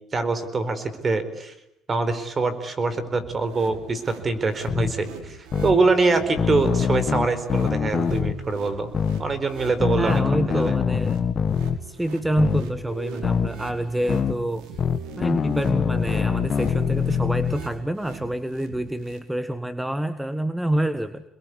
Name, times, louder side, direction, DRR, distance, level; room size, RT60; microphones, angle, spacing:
voice 1, 0.1-1.5 1.9-8.9 9.2-10.8, right 3 dB, 30° right, 12 dB, 4.4 m, -24 dB
sound 1, 3.2-19.2, right 5 dB, 90° right, 5.2 m, -43 dB
sound 2, 4.7-4.9 5.5-5.8 6.4-8.4 8.9-9.2 9.8-11.8 12.4-12.6 13.2-13.5 14.1-14.3 14.8-17.6, left 7 dB, 40° left, 1.8 m, -23 dB
voice 2, 10.0-11.2 11.8-14.7 15.2-21.2, right 1 dB, 5° right, 11 dB, 1.4 m, -27 dB
sound 3, 12.9-18.0 18.2-18.6, right 2 dB, 60° right, 4.7 m, -43 dB
28.0 x 21.5 x 9.8 m, 0.81 s
cardioid pair, 105°, 0 cm